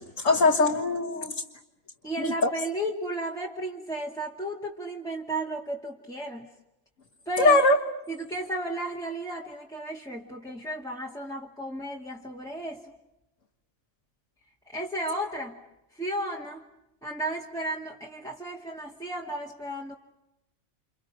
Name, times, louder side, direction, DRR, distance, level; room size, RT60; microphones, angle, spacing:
voice 1, 0.0-1.4 2.2-2.5 7.4-7.8, left 2 dB, 65° left, 1 dB, 2.1 m, -22 dB
voice 2, 2.0-6.5 7.3-7.6 8.1-12.9 14.7-15.6 15.9-16.6 17.0-19.9, right 1 dB, ahead, -2 dB, 2.4 m, -34 dB
30.0 x 29.0 x 6.2 m, 0.91 s
omnidirectional pair, 1.5 m